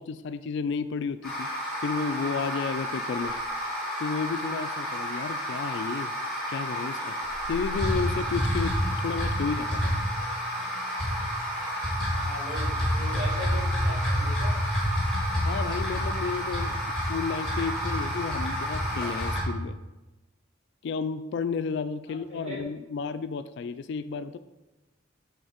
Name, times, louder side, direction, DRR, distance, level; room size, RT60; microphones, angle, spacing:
voice 1, 0.0-1.5 1.8-3.3 4.0-6.1 6.5-7.1 7.5-9.9 15.4-19.8 20.8-24.4, left 5 dB, 60° left, 12 dB, 0.3 m, -32 dB
sound 1, 1.2-19.4, equal, 5° left, 2.5 m, -29 dB
voice 2, 12.2-14.5 22.1-22.6, equal, 35° right, -4 dB, 2.1 m, -39 dB
7.9 x 4.0 x 5.0 m, 1.1 s
head